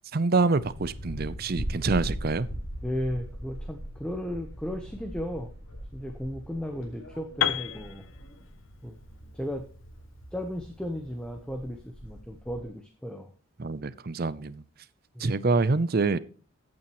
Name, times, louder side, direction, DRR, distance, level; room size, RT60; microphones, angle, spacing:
voice 1, 0.1-2.5 13.6-14.6 15.2-16.2, right 3 dB, 45° right, 0.5 m, -26 dB
sound 1, 0.6-12.6, equal, 85° left, 4.3 m, -40 dB
voice 2, 2.8-5.5 5.9-8.0 8.8-9.0 9.3-9.7 10.3-13.3 15.1-15.3, equal, 5° left, 0.9 m, -35 dB
Piano, 7.4-11.3, left 9 dB, 65° left, 0.8 m, -33 dB
15.5 x 8.7 x 3.1 m
head